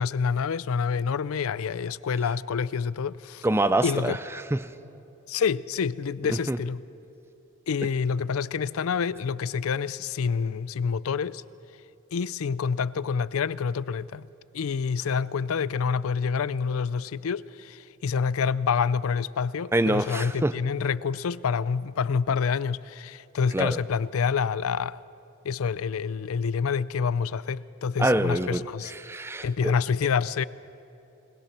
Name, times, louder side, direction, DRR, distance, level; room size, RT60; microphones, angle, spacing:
voice 1, 0.0-3.4 3.8-4.2 5.3-6.8 7.7-11.4 12.1-14.3 14.5-25.0 25.4-28.9 29.4-30.4, left 6 dB, 80° left, 0.4 m, -27 dB
voice 2, 3.4-4.2 4.5-4.6 6.3-6.6 19.7-20.5 23.5-23.8 28.0-29.7, right 1 dB, 10° right, 0.5 m, -25 dB
21.0 x 20.5 x 5.9 m
head